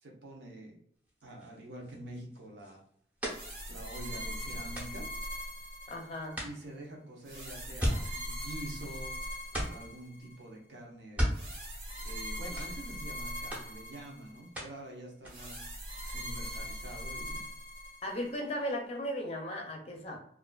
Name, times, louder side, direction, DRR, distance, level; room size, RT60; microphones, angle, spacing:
voice 1, 0.0-0.7 1.2-2.8 3.7-5.1 6.4-9.1 9.7-11.3 12.0-15.8 16.1-17.4, right 1 dB, 80° right, -1 dB, 0.7 m, -46 dB
sound 1, 1.0-5.9 6.3-9.1 9.4-10.0 10.9-12.3 12.5-13.2 13.5-14.9 15.1-15.6, equal, 10° right, 0.6 m, -38 dB
sound 2, 3.3-6.4 7.3-10.4 11.3-14.5 15.3-18.4, equal, 45° right, 0.8 m, -41 dB
voice 2, 5.9-6.4 18.0-20.2, equal, 35° left, 1 dB, 0.5 m, -36 dB
2.4 x 2.4 x 2.2 m, 0.67 s
head